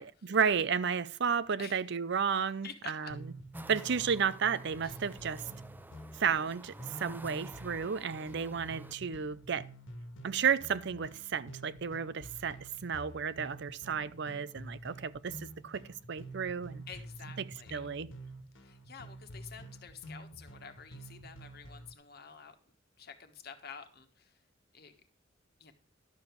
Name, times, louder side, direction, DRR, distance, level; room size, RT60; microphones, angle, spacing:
voice 1, 0.0-3.1 3.7-5.4 6.2-9.7 10.2-16.8 17.7-18.1, right 6 dB, 65° right, 0.6 m, -32 dB
voice 2, 2.6-3.1 4.8-5.0 12.5-12.6 16.9-17.9 18.6-22.5 23.0-24.4 24.7-24.9 25.6-25.7, left 6 dB, 55° left, 1.4 m, -49 dB
sound 1, 3.1-21.9, right 1 dB, 85° left, 1.5 m, -49 dB
sound 2, 3.5-8.9, right 1 dB, 10° right, 0.4 m, -49 dB
11.5 x 7.0 x 4.6 m
head